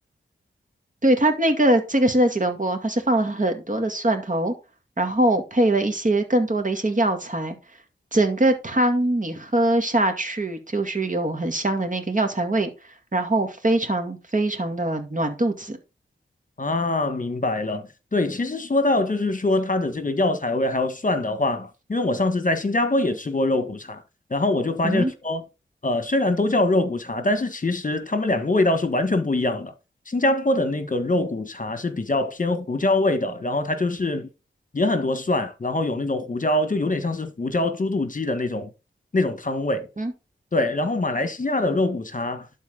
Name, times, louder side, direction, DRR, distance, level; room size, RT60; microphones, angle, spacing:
voice 1, 1.0-4.5 5.0-7.6 8.1-12.7 13.1-15.8 24.8-25.1 40.0-40.1, right 1 dB, 40° right, 2.3 m, -22 dB
voice 2, 16.6-24.0 24.3-25.4 25.8-29.7 30.1-34.3 34.7-38.7 39.1-39.9 40.5-42.5, left 2 dB, 40° left, 1.3 m, -23 dB
12.0 x 4.1 x 3.8 m
cardioid pair, 40°, 21 cm